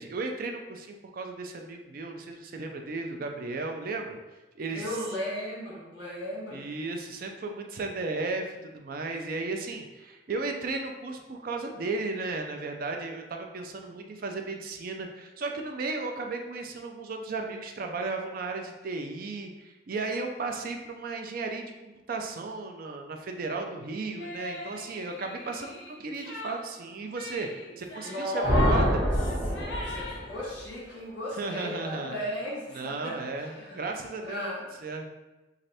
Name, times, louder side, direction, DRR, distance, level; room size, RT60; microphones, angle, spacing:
voice 1, 0.0-4.2 4.5-5.0 6.5-29.0 31.4-32.2 32.7-34.5 34.8-35.1, right 3 dB, 50° right, 3 dB, 0.4 m, -35 dB
voice 2, 4.7-6.6 27.9-28.9 29.8-33.1 33.5-33.8 34.2-34.7, equal, 65° left, -5 dB, 1.5 m, -34 dB
sound 1, 24.2-31.0 31.5-31.8 32.0-32.1 32.3-33.8, left 2 dB, 80° left, 0.8 m, -43 dB
sound 2, 28.4-30.4, equal, 35° left, 1.5 m, -26 dB
3.1 x 2.5 x 4.1 m, 1.1 s
head